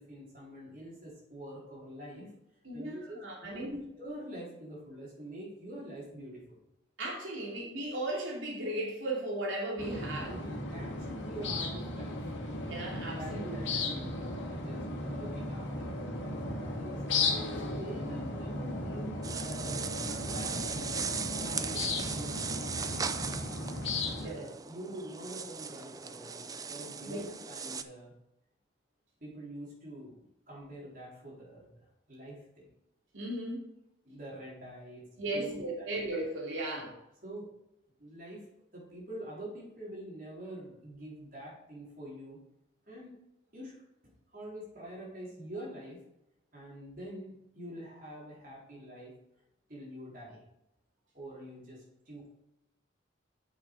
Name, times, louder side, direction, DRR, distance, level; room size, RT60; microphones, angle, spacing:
voice 1, 0.0-2.3 2.7-6.6 7.4-7.5 10.3-12.2 13.1-17.0 17.5-20.7 21.4-22.5 24.2-28.1 29.2-32.7 34.0-36.1 36.6-36.8 37.2-37.5 38.0-38.5 38.7-42.4 42.9-43.1 43.5-43.7 44.3-46.0 46.5-49.1 49.7-50.4 51.1-52.4, right 1 dB, 45° right, -5 dB, 4.2 m, -46 dB
voice 2, 2.6-3.8 7.0-10.3 12.6-13.6 24.2-24.5 27.0-27.2 33.1-33.7 35.2-36.9, right 1 dB, 80° right, -3 dB, 2.8 m, -36 dB
sound 1, 9.8-24.3, left 2 dB, 70° left, 2.0 m, -36 dB
sound 2, 19.2-27.8, right 6 dB, 20° right, 0.4 m, -38 dB
9.0 x 7.2 x 4.9 m, 0.84 s
head